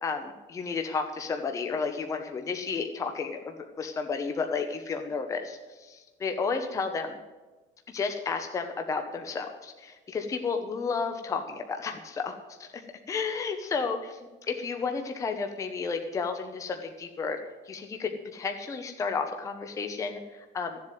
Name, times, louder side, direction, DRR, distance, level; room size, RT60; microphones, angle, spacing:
voice 1, 0.0-7.2 7.9-12.8 13.1-17.4 17.6-20.8, left 5 dB, 20° left, 6 dB, 0.9 m, -32 dB
13.5 x 7.6 x 9.2 m, 1.2 s
cardioid pair, 160°, 16 cm